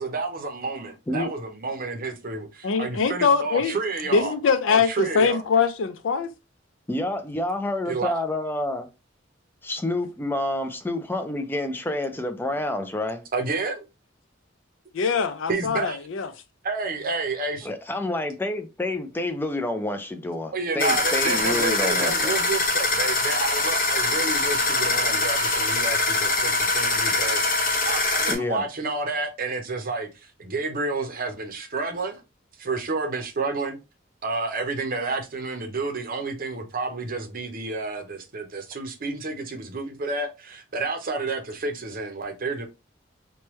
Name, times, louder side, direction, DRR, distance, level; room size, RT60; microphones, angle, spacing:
voice 1, 0.0-2.5 2.8-4.3 4.7-5.4 7.9-8.2 13.3-13.8 15.5-16.0 16.6-17.7 20.5-27.5 27.8-32.2 32.6-33.8 34.2-42.7, right 3 dB, 50° right, 0.6 m, -30 dB
voice 2, 2.6-3.8 4.1-6.3 14.9-16.3, left 5 dB, 80° left, 0.4 m, -22 dB
voice 3, 6.9-8.9 9.6-13.2 17.6-22.4 28.3-28.6, left 2 dB, 10° left, 0.4 m, -28 dB
sound 1, 20.8-28.4, left 3 dB, 50° left, 0.9 m, -23 dB
3.1 x 2.2 x 3.0 m
head